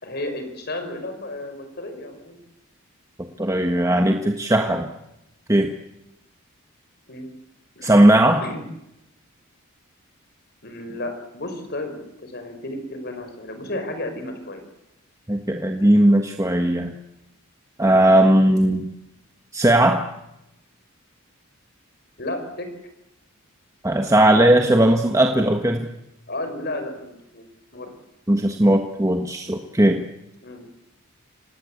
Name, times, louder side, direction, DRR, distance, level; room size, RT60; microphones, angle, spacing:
voice 1, 0.0-2.4 7.1-7.3 7.7-8.1 8.4-8.7 10.6-14.6 22.2-22.7 26.3-27.4 27.7-27.9 30.4-30.7, left 1 dB, 50° left, 7 dB, 5.0 m, -33 dB
voice 2, 3.4-4.9 5.5-5.7 7.8-8.4 15.3-16.9 17.8-18.9 19.5-20.0 23.8-25.9 28.3-30.0, right 1 dB, 15° right, 4 dB, 1.4 m, -17 dB
26.0 x 19.0 x 8.5 m, 0.88 s
head